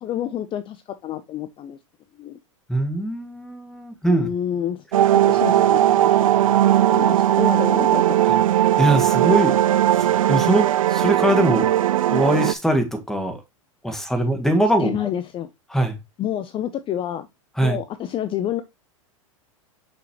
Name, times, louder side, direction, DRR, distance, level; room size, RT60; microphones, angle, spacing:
voice 1, 0.0-1.8 2.2-2.4 4.1-4.8 5.1-6.6 6.9-8.2 14.8-15.5 16.2-17.3 17.6-18.6, left 10 dB, 30° left, 0.6 m, -29 dB
voice 2, 2.7-4.3 8.8-9.6 9.9-11.7 12.1-13.4 13.8-15.1 15.7-16.0 17.6-17.8, right 1 dB, ahead, 1.6 m, -22 dB
sound 1, 4.9-12.5, right 12 dB, 85° right, 0.4 m, -18 dB
6.2 x 5.8 x 3.0 m
hypercardioid pair, 105°, 17 cm